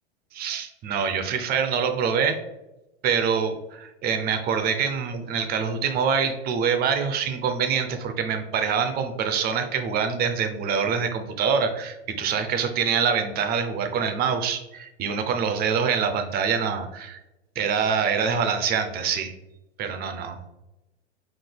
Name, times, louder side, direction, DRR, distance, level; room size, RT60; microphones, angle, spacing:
voice 1, 0.3-2.4 3.0-17.2 17.6-19.3 19.8-20.4, right 6 dB, 30° right, 7 dB, 0.6 m, -25 dB
4.8 x 3.9 x 2.2 m, 0.96 s
hypercardioid pair, 105°, 34 cm